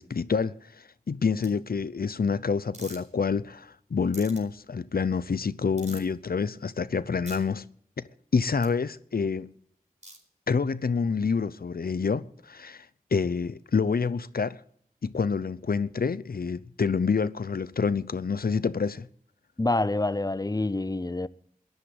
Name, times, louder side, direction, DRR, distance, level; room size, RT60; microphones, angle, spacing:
voice 1, 0.0-7.6 8.3-9.5 10.5-12.9 13.1-14.6 15.0-19.1, left 5 dB, 75° left, 0.6 m, -27 dB
sound 1, 1.4-1.5 2.7-3.0 4.1-4.4 5.8-6.1 7.2-7.4 8.6-8.7 10.0-10.2, right 1 dB, 50° right, 4.5 m, -44 dB
voice 2, 19.6-21.3, left 2 dB, 25° left, 0.7 m, -27 dB
13.5 x 11.0 x 8.1 m
wide cardioid pair, 40°, 15 cm